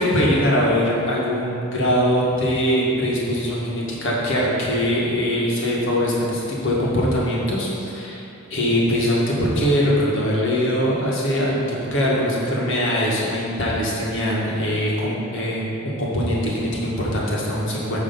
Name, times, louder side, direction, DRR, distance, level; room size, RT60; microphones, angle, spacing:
voice 1, 0.0-8.2 8.5-18.0, equal, 60° left, -5 dB, 1.9 m, -22 dB
10.0 x 3.5 x 7.0 m, 2.7 s
head